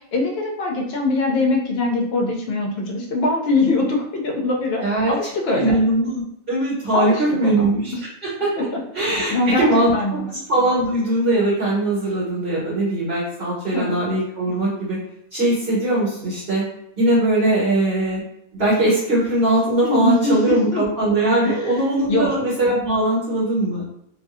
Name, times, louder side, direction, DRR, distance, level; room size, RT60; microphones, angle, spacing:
voice 1, 0.1-4.8 5.1-5.8 6.9-7.7 9.0-10.3 13.7-14.0 19.8-20.8 21.4-21.6 22.1-22.3, left 2 dB, 60° left, 1 dB, 0.7 m, -22 dB
voice 2, 4.8-5.1 5.5-7.9 8.2-8.5 8.9-15.0 15.3-16.6 17.0-18.2 18.5-23.8, right 1 dB, 45° right, -7 dB, 1.1 m, -20 dB
2.6 x 2.3 x 2.4 m, 0.76 s
omnidirectional pair, 1.4 m